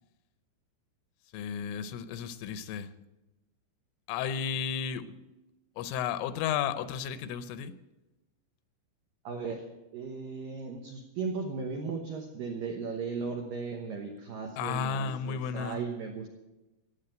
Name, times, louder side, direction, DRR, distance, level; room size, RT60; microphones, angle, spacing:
voice 1, 1.3-2.9 4.1-5.2 5.8-7.7 14.6-15.8, left 8 dB, 80° left, 12 dB, 3.1 m, -33 dB
voice 2, 9.2-9.7 9.9-16.3, right 5 dB, 80° right, 2 dB, 2.0 m, -36 dB
15.0 x 9.0 x 8.9 m, 1.0 s
omnidirectional pair, 5.9 m